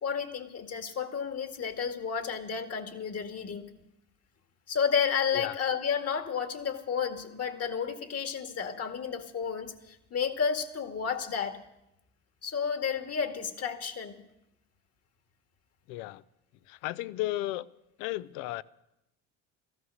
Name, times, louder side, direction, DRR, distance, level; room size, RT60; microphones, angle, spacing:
voice 1, 0.0-3.7 4.7-11.6 12.4-14.2, left 7 dB, 50° left, 2.1 m, -31 dB
voice 2, 15.9-16.2 16.7-17.7 18.0-18.6, left 16 dB, 80° left, 0.6 m, -34 dB
16.0 x 14.0 x 6.5 m
supercardioid pair, 80°, 33 cm